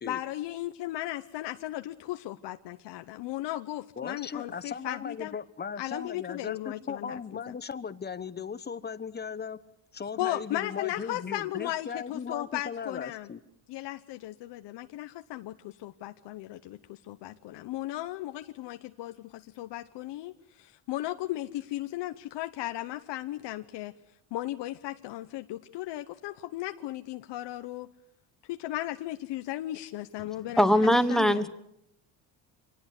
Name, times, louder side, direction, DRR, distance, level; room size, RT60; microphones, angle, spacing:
voice 1, 0.1-5.3 5.8-7.2 7.5-7.6 10.2-13.3 13.7-23.9 24.3-27.9 28.5-31.5, left 15 dB, 70° left, 8 dB, 1.0 m, -36 dB
voice 2, 4.0-9.6 9.9-13.4, left 6 dB, 25° left, 14 dB, 1.0 m, -37 dB
voice 3, 30.6-31.5, equal, ahead, 13 dB, 1.2 m, -21 dB
26.0 x 19.0 x 8.3 m, 0.78 s
cardioid pair, 130°, 43 cm